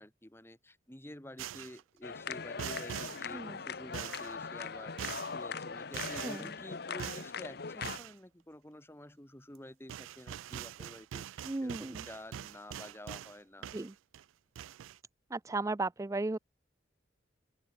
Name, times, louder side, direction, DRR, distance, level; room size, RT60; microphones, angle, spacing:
voice 1, 0.0-13.7, left 1 dB, 10° left, 1.8 m, -50 dB
sound 1, 1.4-1.8 2.6-3.2 3.9-4.3 5.0-5.3 5.9-6.5 7.0-7.3 7.8-8.1 9.5-9.6 9.9-13.4 13.6-14.2 14.6-15.0, right 10 dB, 90° right, 0.3 m, -43 dB
sound 2, 2.0-8.0, left 5 dB, 55° left, 0.9 m, -40 dB
voice 2, 11.4-12.0 13.7-13.9 15.3-16.4, right 2 dB, 15° right, 0.3 m, -35 dB
open air
head